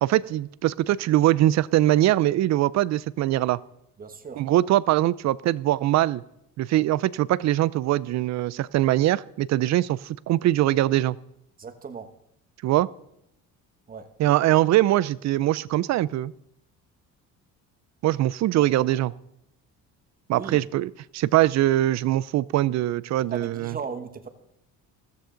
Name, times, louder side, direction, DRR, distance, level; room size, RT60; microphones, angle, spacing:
voice 1, 0.0-3.6 4.4-6.2 6.6-11.2 12.6-12.9 14.2-16.3 18.0-19.1 20.3-23.7, right 14 dB, 55° right, 21 dB, 0.4 m, -22 dB
voice 2, 4.0-4.4 11.6-12.1 13.9-14.1 18.5-18.7 20.3-20.6 23.3-24.3, right 5 dB, 25° right, 8 dB, 1.2 m, -37 dB
15.0 x 14.0 x 3.9 m, 0.78 s
cardioid pair, 150°, 35 cm